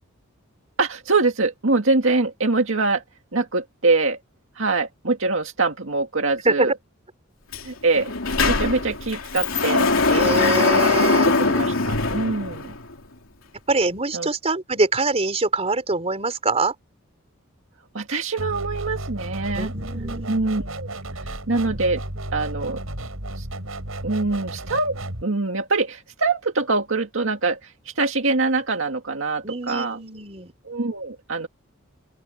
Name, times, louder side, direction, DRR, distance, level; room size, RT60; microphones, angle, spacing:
voice 1, 0.8-3.0 3.3-4.2 4.6-6.7 7.6-8.1 8.5-9.9 11.3-12.7 14.1-14.3 17.9-19.7 20.3-21.0 21.5-22.0 22.3-22.8 23.4-23.5 24.0-25.0 25.2-30.0 30.7-31.5, right 3 dB, 65° right, 2.1 m, -24 dB
Sliding door, 7.5-7.6 7.9-12.9, left 3 dB, 75° left, 3.1 m, -21 dB
voice 2, 10.1-11.6 13.7-16.7 19.5-20.3 29.4-30.5, right 3 dB, 30° right, 4.2 m, -24 dB
sound 1, 18.4-25.2, right 1 dB, 85° right, 6.4 m, -33 dB
open air
head